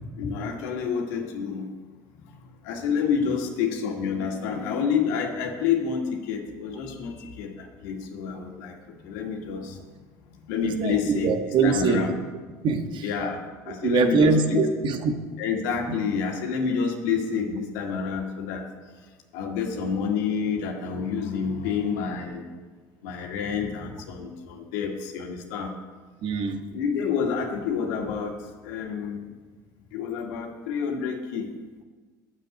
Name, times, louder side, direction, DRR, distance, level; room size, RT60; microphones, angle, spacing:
voice 1, 0.2-1.7 2.6-8.8 9.0-9.8 10.5-11.3 11.6-12.1 13.0-14.6 15.4-18.6 19.3-22.5 23.0-25.7 26.7-29.3 29.9-31.5, left 6 dB, 80° left, 2 dB, 1.9 m, -28 dB
voice 2, 10.6-12.1 12.6-13.1 13.8-15.3 15.9-16.0 26.2-26.6, right 4 dB, 55° right, 6 dB, 1.4 m, -23 dB
9.5 x 7.6 x 8.0 m, 1.4 s
hypercardioid pair, 75°, 9 cm